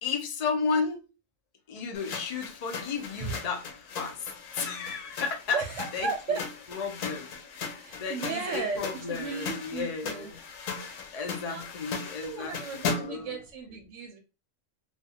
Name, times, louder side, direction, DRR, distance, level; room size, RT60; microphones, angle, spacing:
voice 1, 0.0-1.0 1.7-5.6 5.9-6.4 6.7-10.4 11.1-13.4, left 5 dB, 55° left, 0.4 m, -33 dB
sound 1, 1.9-13.3, left 5 dB, 85° left, 1.0 m, -38 dB
voice 2, 5.5-6.4 7.8-10.3 11.5-11.6 12.2-14.2, right 5 dB, 75° right, 0.9 m, -35 dB
2.4 x 2.3 x 2.7 m
omnidirectional pair, 1.3 m